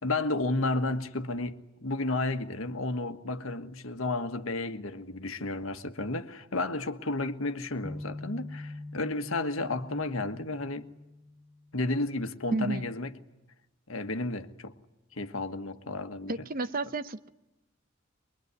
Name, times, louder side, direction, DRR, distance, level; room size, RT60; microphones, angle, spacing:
voice 1, 0.0-10.9 11.7-13.2 13.9-14.7 15.1-16.3, left 2 dB, 85° left, 1.5 m, -32 dB
sound 1, 7.8-11.8, left 2 dB, ahead, 4.9 m, -43 dB
voice 2, 12.5-12.9 16.3-17.3, right 2 dB, 45° right, 0.9 m, -31 dB
24.0 x 22.5 x 9.7 m
head